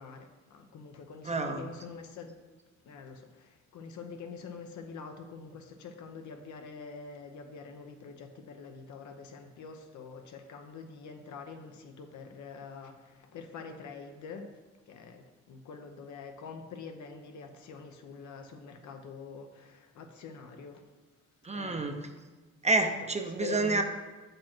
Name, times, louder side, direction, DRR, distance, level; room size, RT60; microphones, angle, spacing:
voice 1, 0.0-2.3 2.8-14.5 14.9-20.9 21.5-22.1 23.4-23.8, left 5 dB, 75° left, 5 dB, 0.9 m, -45 dB
voice 2, 1.2-1.6 21.4-22.1 22.6-23.8, right 3 dB, 20° right, 5 dB, 0.7 m, -29 dB
7.3 x 5.2 x 4.4 m, 1.3 s
cardioid pair, 90°, 30 cm